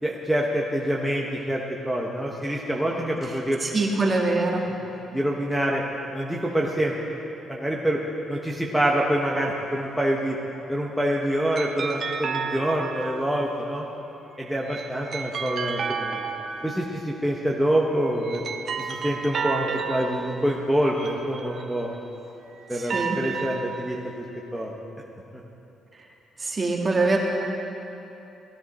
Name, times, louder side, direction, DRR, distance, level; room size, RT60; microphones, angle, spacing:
voice 1, 0.0-3.6 5.1-5.8 6.1-6.9 7.5-8.0 8.3-10.4 10.7-13.8 14.4-16.2 16.6-18.4 18.8-21.9 22.7-24.2 24.5-24.7 25.3-25.4, right 1 dB, ahead, -3 dB, 1.1 m, -26 dB
voice 2, 3.6-4.6 22.9-23.2 26.4-27.2, right 3 dB, 30° right, -1 dB, 1.9 m, -23 dB
sound 1, 9.2-10.0 11.6-13.5 14.5-17.2 18.0-22.1 22.7-24.2, right 5 dB, 55° right, 0.9 m, -33 dB
16.5 x 10.5 x 4.2 m, 2.9 s
cardioid pair, 90°, 0 cm